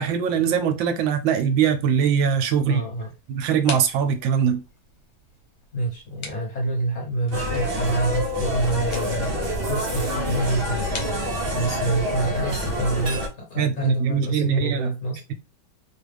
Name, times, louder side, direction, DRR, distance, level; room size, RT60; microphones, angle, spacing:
voice 1, 0.0-2.8 3.3-4.6 13.6-14.9, right 7 dB, 80° right, 1.3 m, -22 dB
sound 1, 1.9-11.7, left 4 dB, 75° left, 1.7 m, -44 dB
voice 2, 2.6-3.1 5.7-9.4 9.7-10.9 11.5-15.2, right 2 dB, 45° left, 1.2 m, -27 dB
sound 2, 7.3-13.3, equal, 55° right, 0.6 m, -27 dB
3.3 x 2.3 x 3.3 m
omnidirectional pair, 2.2 m